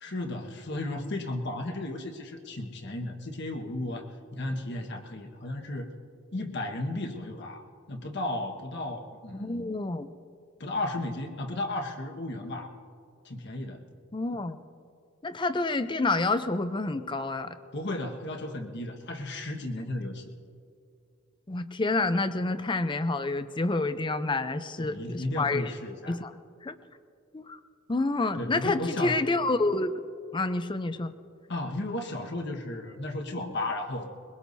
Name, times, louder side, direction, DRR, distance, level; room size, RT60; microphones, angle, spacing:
voice 1, 0.0-5.9 6.3-9.7 10.6-12.7 13.2-13.8 17.7-20.4 24.8-26.2 28.3-29.2 31.5-34.2, left 2 dB, 60° left, 3 dB, 1.4 m, -34 dB
voice 2, 9.3-10.1 14.1-14.6 15.2-17.6 21.5-25.7 26.1-26.3 26.6-26.7 27.3-27.6 27.9-29.9 30.3-31.1, left 2 dB, 25° left, 11 dB, 0.6 m, -28 dB
22.0 x 22.0 x 2.7 m, 2.5 s
head